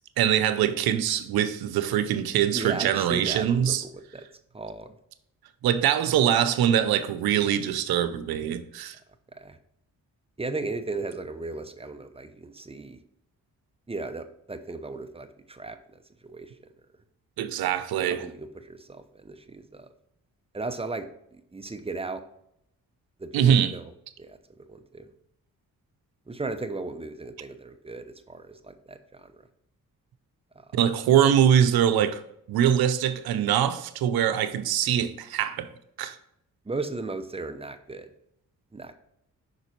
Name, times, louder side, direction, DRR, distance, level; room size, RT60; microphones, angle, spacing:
voice 1, 0.2-3.8 5.6-9.0 17.4-18.2 23.3-23.7 30.7-32.2 32.5-35.7 36.0-36.2, right 9 dB, 85° right, 0.6 m, -23 dB
voice 2, 2.5-4.2 4.5-5.0 9.3-9.6 10.4-13.0 13.9-16.0 16.2-16.7 18.2-19.9 20.5-22.2 23.2-23.9 24.2-25.1 26.3-29.4 36.6-38.1 38.7-39.0, right 3 dB, 15° right, 0.8 m, -36 dB
6.0 x 4.0 x 4.4 m
cardioid pair, 60°, 36 cm